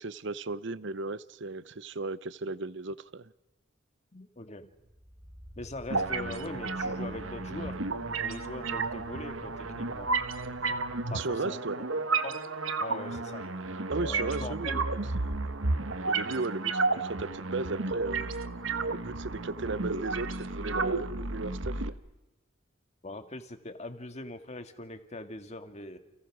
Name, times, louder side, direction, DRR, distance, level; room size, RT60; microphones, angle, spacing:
voice 1, 0.0-3.3 11.1-11.8 13.9-14.8 15.3-15.4 16.1-18.4 18.9-22.0, right 3 dB, 65° right, 17 dB, 0.8 m, -36 dB
voice 2, 4.1-4.7 5.6-7.8 8.2-10.1 11.1-11.6 12.2-12.4 12.8-13.5 14.0-14.8 23.0-26.0, left 2 dB, 35° left, 7 dB, 2.0 m, -41 dB
sound 1, 4.7-19.7 20.0-20.1, equal, 20° right, 3.0 m, -52 dB
arp bass, 5.9-21.9, right 3 dB, 90° right, 1.3 m, -32 dB
29.5 x 29.5 x 6.2 m, 1.0 s
head